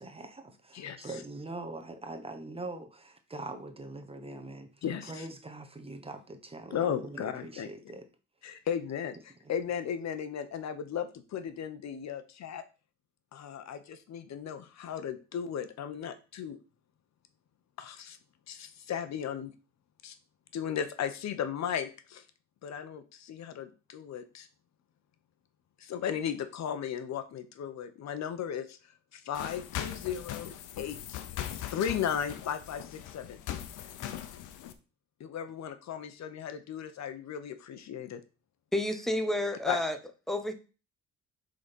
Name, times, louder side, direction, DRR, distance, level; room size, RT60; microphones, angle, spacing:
voice 1, 0.0-4.7 5.0-8.1 9.4-9.5, right 2 dB, 20° right, 7 dB, 1.2 m, -42 dB
voice 2, 0.7-1.1 4.8-5.3 6.7-7.7 8.4-12.6 13.3-16.6 17.8-18.2 18.5-19.5 20.0-20.2 20.5-22.2 22.6-24.5 25.8-28.8 29.1-31.2 31.5-33.4 35.2-38.2 39.7-39.8, left 8 dB, 65° left, 10 dB, 0.9 m, -36 dB
sound 1, 29.3-34.7, left 11 dB, 90° left, 0.8 m, -40 dB
voice 3, 38.7-40.0 40.3-40.5, left 1 dB, ahead, 7 dB, 1.1 m, -30 dB
6.7 x 3.9 x 5.3 m, 0.34 s
cardioid pair, 90°, 30 cm